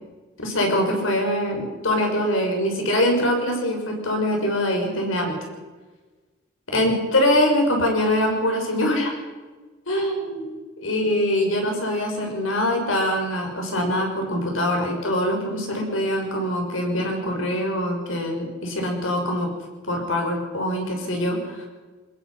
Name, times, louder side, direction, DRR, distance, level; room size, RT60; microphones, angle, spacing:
voice 1, 0.4-5.3 6.7-9.2 9.9-10.4 10.8-19.5 19.9-21.7, left 1 dB, 90° left, 2 dB, 6.2 m, -23 dB
21.5 x 21.0 x 5.8 m, 1.3 s
head